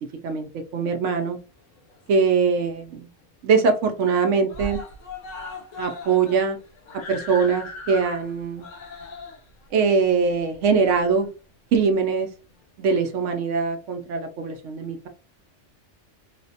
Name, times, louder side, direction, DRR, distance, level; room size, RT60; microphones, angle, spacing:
voice 1, 0.2-1.4 2.1-3.1 3.4-4.8 5.8-6.6 7.1-8.7 9.7-11.3 11.7-12.3 12.8-15.1, right 5 dB, 80° right, 6 dB, 0.9 m, -22 dB
Screaming, 1.6-2.5 2.9-3.0 3.3-3.4 3.7-4.2 4.5-11.3 12.1-12.2, left 2 dB, 80° left, 1.0 m, -39 dB
3.3 x 2.1 x 2.7 m, 0.33 s
omnidirectional pair, 1.3 m